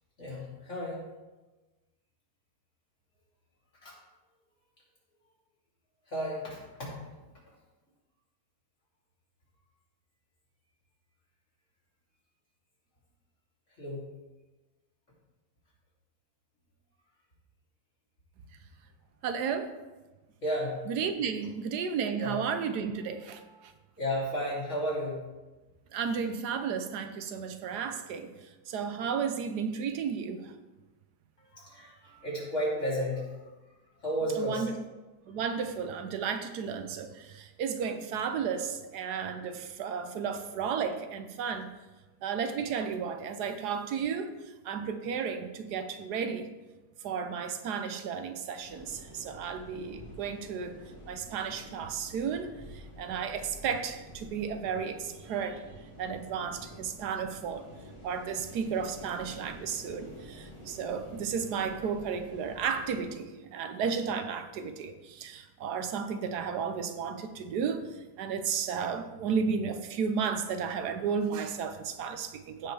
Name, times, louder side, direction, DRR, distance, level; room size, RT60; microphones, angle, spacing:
voice 1, 0.2-1.0 3.8-4.0 6.1-7.0 13.8-14.1 20.4-20.9 22.2-22.4 24.0-25.3 31.4-33.5 34.0-34.7, equal, 50° left, -6 dB, 3.4 m, -33 dB
voice 2, 19.2-19.7 20.9-23.7 25.9-28.3 28.7-30.5 34.4-34.8 35.3-41.7 42.2-46.5 47.0-50.8 51.1-55.6 56.0-57.6 58.0-72.7, right 6 dB, 85° right, 8 dB, 1.3 m, -33 dB
sound 1, 48.6-63.1, equal, 20° left, 1.4 m, -49 dB
15.0 x 5.7 x 3.3 m, 1.2 s
omnidirectional pair, 1.7 m